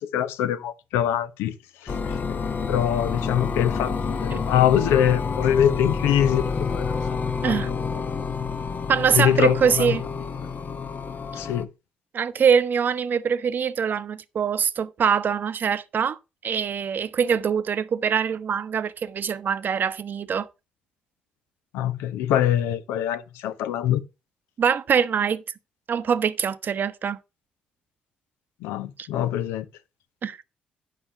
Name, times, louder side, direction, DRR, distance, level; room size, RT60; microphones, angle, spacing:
voice 1, 0.0-1.5 1.8-2.2 2.7-6.4 6.7-7.2 7.5-7.9 9.1-10.0 11.4-11.7 21.7-24.0 28.6-29.6, left 10 dB, 70° left, 0.6 m, -24 dB
sound 1, 1.9-11.6, left 5 dB, 45° left, 1.0 m, -28 dB
voice 2, 8.9-10.0 12.1-20.5 24.6-25.4 25.9-27.2 29.0-29.1 30.2-30.4, right 7 dB, 50° right, 0.8 m, -23 dB
9.2 x 5.6 x 5.0 m
hypercardioid pair, 45°, 4 cm